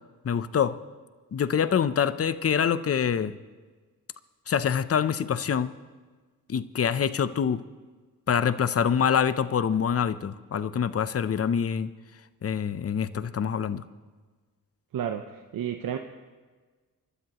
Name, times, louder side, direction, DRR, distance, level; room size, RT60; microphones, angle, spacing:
voice 1, 0.2-0.8 1.3-3.3 4.5-5.7 6.5-7.6 8.3-11.9 12.4-13.8, left 7 dB, 45° left, 14 dB, 0.7 m, -25 dB
voice 2, 14.9-16.0, right 9 dB, 75° right, 6 dB, 0.8 m, -31 dB
29.5 x 12.5 x 3.0 m, 1.4 s
cardioid pair, 65°, 34 cm